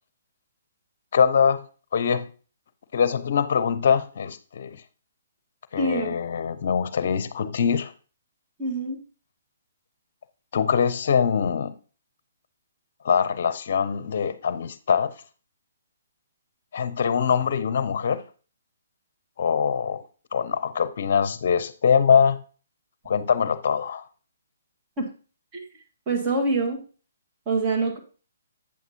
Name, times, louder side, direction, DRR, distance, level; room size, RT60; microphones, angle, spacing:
voice 1, 1.1-1.7 1.9-2.3 2.9-4.8 5.7-7.9 10.5-11.7 13.0-15.1 16.7-18.2 19.4-20.0 20.3-22.4 23.1-24.0, left 7 dB, 55° left, 0.6 m, -23 dB
voice 2, 5.8-6.2 8.6-9.0 25.0-25.1 25.5-25.7 26.1-26.8 27.4-28.0, right 3 dB, 25° right, 1.7 m, -25 dB
8.6 x 7.3 x 2.8 m
hypercardioid pair, 140°, 0 cm